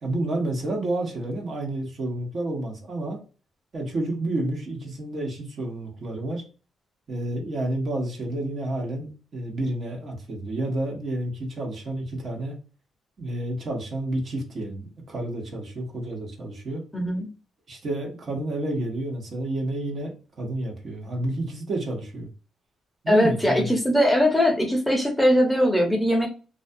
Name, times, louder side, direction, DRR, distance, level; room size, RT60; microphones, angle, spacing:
voice 1, 0.0-3.2 3.7-6.4 7.1-12.6 13.2-16.8 17.7-22.3 23.0-23.7, right 1 dB, 50° right, 0 dB, 1.0 m, -30 dB
voice 2, 16.9-17.3 23.1-26.3, equal, 5° left, 0 dB, 0.7 m, -21 dB
2.4 x 2.3 x 2.5 m, 0.35 s
cardioid pair, 90°, 0 cm